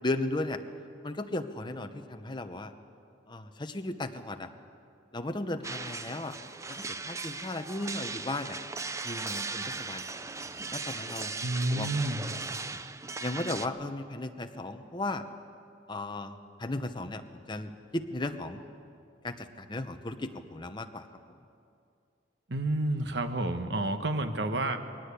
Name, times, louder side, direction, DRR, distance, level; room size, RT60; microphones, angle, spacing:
voice 1, 0.0-0.6 1.0-2.7 3.3-4.5 5.1-6.4 6.7-8.6 9.0-10.0 10.7-11.3 11.7-11.9 12.6-12.8 13.2-15.2 15.9-18.6 19.2-21.1, left 2 dB, 25° left, 7 dB, 0.9 m, -35 dB
sound 1, 5.6-13.7, right 4 dB, 15° right, 0.5 m, -38 dB
voice 2, 11.4-12.2 22.5-24.8, right 2 dB, 60° right, 7 dB, 1.3 m, -30 dB
21.5 x 18.5 x 8.4 m, 2.5 s
head